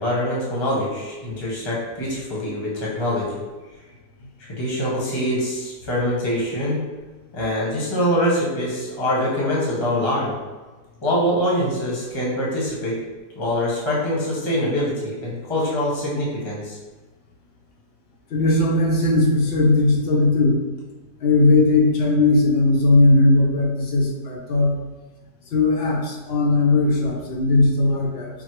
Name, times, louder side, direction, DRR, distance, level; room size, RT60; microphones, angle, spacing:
voice 1, 0.0-3.3 4.4-6.8 7.3-10.3 11.0-13.0 13.4-16.8, equal, 20° left, -5 dB, 0.8 m, -24 dB
voice 2, 18.3-20.6 21.2-24.7 25.5-28.3, left 2 dB, 55° left, -3 dB, 0.7 m, -18 dB
4.2 x 2.0 x 4.5 m, 1.3 s
omnidirectional pair, 1.8 m